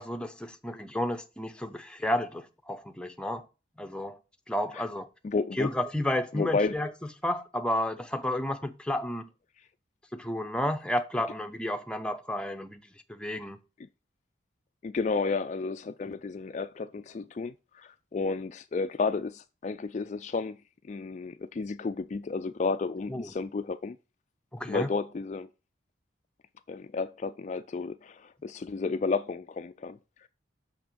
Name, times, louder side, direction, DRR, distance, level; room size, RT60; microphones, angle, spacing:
voice 1, 0.0-3.5 3.8-4.2 4.5-5.1 5.5-6.9 7.2-9.3 10.1-13.6 23.1-23.3 24.5-24.9, left 1 dB, 5° left, 0.6 m, -32 dB
voice 2, 5.2-5.7 6.3-6.8 14.8-20.6 20.9-24.0 24.7-25.5 26.7-30.3, left 4 dB, 40° left, 0.3 m, -32 dB
6.1 x 5.8 x 6.8 m
head